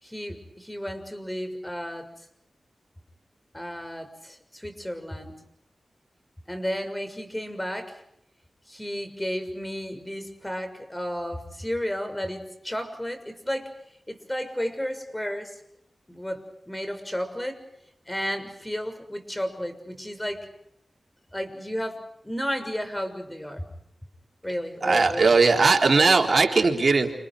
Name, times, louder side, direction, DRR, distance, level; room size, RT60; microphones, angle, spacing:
voice 1, 0.0-2.1 3.5-5.4 6.5-8.0 8.7-13.7 14.1-15.5 16.1-17.6 18.1-20.5 21.3-23.7 24.4-25.3, equal, 15° left, 8 dB, 6.5 m, -33 dB
voice 2, 24.8-27.2, right 4 dB, 60° right, 2 dB, 3.8 m, -19 dB
29.5 x 28.5 x 5.0 m, 0.74 s
cardioid pair, 50°, 0 cm